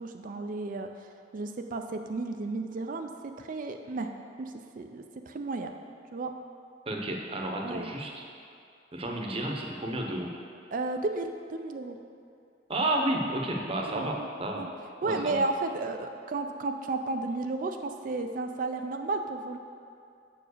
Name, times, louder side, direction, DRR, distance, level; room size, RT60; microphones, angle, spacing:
voice 1, 0.0-4.1 4.4-5.7 6.1-6.3 7.6-7.9 10.7-12.0 13.9-14.3 14.5-14.7 15.0-19.6, right 3 dB, 45° right, 5 dB, 0.4 m, -33 dB
voice 2, 6.9-8.2 8.9-10.3 12.7-14.6 15.0-15.4, right 1 dB, 30° right, 1 dB, 0.8 m, -31 dB
7.2 x 4.6 x 6.6 m, 2.5 s
head